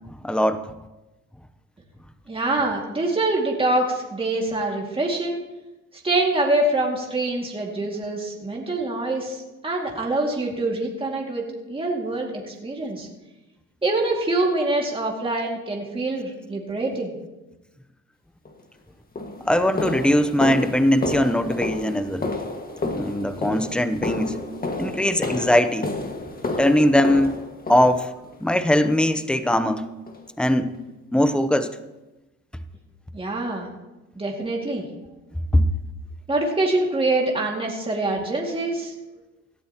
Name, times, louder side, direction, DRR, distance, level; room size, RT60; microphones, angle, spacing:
voice 1, 0.2-0.6 19.5-22.3 22.9-24.3 24.8-25.9 26.6-27.4 27.7-28.1 28.4-29.8 30.4-30.8 31.1-31.7 35.5-35.7, left 1 dB, 5° left, 11 dB, 0.8 m, -20 dB
voice 2, 2.3-5.4 6.0-13.1 13.8-17.1 33.1-33.7 34.2-34.9 36.3-38.9, right 2 dB, 20° right, -1 dB, 2.3 m, -25 dB
sound 1, 18.5-18.6 19.2-28.4 28.8-29.2 29.5-29.7 30.1-30.2 30.7-30.8 31.3-31.4, left 2 dB, 30° left, 1.8 m, -31 dB
17.5 x 12.5 x 3.0 m, 1.0 s
cardioid pair, 90°, 30 cm